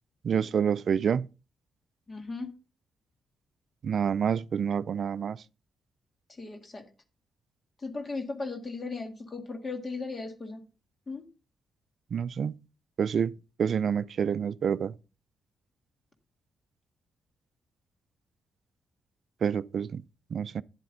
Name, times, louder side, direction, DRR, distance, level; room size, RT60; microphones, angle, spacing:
voice 1, 0.2-1.3 3.8-5.4 12.1-12.6 13.0-13.3 13.6-14.9 19.4-20.0 20.3-20.6, right 7 dB, 60° right, 0.4 m, -27 dB
voice 2, 2.1-2.5 6.4-6.8 7.8-10.6 11.1-11.2, left 3 dB, 35° left, 1.8 m, -36 dB
10.5 x 7.7 x 3.7 m
cardioid pair, 65°, 0 cm